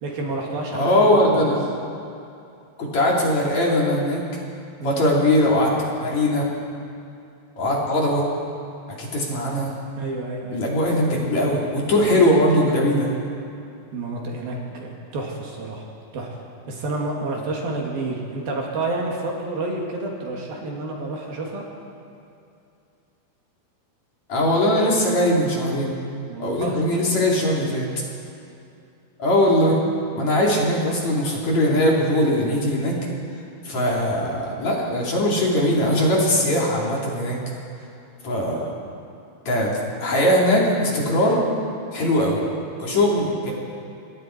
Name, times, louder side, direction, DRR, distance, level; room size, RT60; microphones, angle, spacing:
voice 1, 0.0-1.5 4.8-5.1 10.0-10.6 13.9-15.8 16.1-16.3 16.7-21.6 26.3-26.7 33.7-33.9, right 2 dB, 65° right, -1 dB, 4.2 m, -29 dB
voice 2, 0.7-1.6 2.8-4.2 4.8-6.5 7.6-8.3 8.9-9.7 10.5-13.1 24.3-25.9 26.4-27.9 29.2-29.8 30.1-33.0 33.6-37.4 38.2-38.7 39.5-41.4 41.9-42.4 42.8-43.5, left 1 dB, 45° left, -3 dB, 3.9 m, -20 dB
26.5 x 22.5 x 4.6 m, 2.6 s
omnidirectional pair, 4.7 m